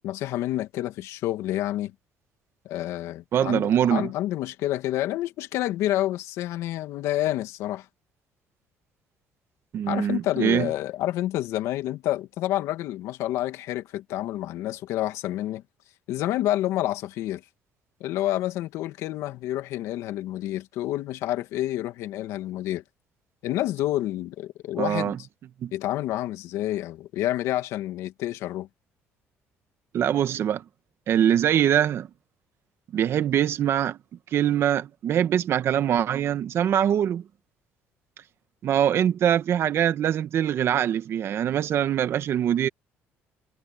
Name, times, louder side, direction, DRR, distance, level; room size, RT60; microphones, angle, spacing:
voice 1, 0.0-1.9 2.6-7.9 9.9-15.6 16.1-17.4 18.0-22.8 23.4-25.2 25.7-28.7, left 14 dB, 80° left, 2.3 m, -28 dB
voice 2, 3.3-4.1 9.7-10.7 24.8-25.2 25.6-25.7 29.9-30.6 31.1-32.1 32.9-34.0 34.3-37.2 38.6-42.7, right 10 dB, 55° right, 1.6 m, -23 dB
cardioid pair, 100°, 5 cm